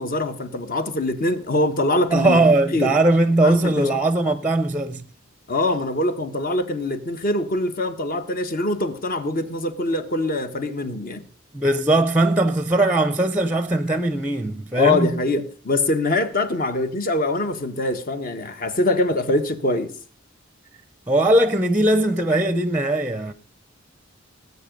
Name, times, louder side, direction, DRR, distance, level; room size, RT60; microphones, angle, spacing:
voice 1, 0.0-2.4 2.7-2.9 3.4-3.9 5.5-11.2 14.7-19.9, left 2 dB, 45° left, 1.4 m, -23 dB
voice 2, 2.1-5.1 11.5-15.2 21.1-23.3, right 2 dB, 10° right, 0.6 m, -19 dB
18.0 x 8.3 x 5.3 m
head